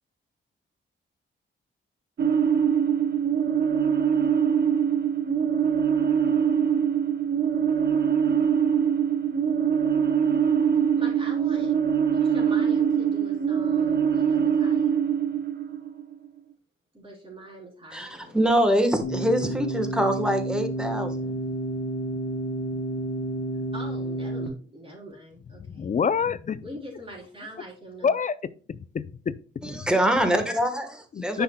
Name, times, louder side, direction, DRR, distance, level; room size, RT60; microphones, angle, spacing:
sound 1, 2.2-16.3, right 8 dB, 50° right, 0.8 m, -23 dB
voice 1, 11.0-11.7 12.1-15.0 16.9-18.4 23.7-25.9 26.6-28.2, right 1 dB, 25° right, 3.9 m, -43 dB
voice 2, 17.9-21.3 29.6-31.4, equal, 5° right, 1.2 m, -24 dB
sound 2, 19.0-24.5, right 1 dB, 70° left, 1.1 m, -30 dB
voice 3, 25.7-26.6 28.0-28.3 28.7-29.4 31.1-31.4, left 6 dB, 35° left, 0.4 m, -26 dB
10.0 x 5.8 x 2.2 m
cardioid pair, 100°, 21 cm